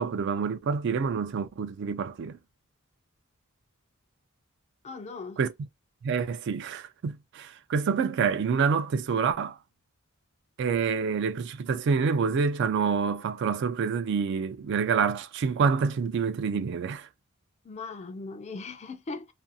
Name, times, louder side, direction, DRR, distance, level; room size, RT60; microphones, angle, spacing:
voice 1, 0.0-2.4 5.4-5.5 6.0-9.6 10.6-17.1, right 5 dB, 60° right, 0.3 m, -27 dB
voice 2, 4.8-5.4 17.6-19.3, left 3 dB, 30° left, 0.4 m, -39 dB
2.5 x 2.3 x 2.6 m
head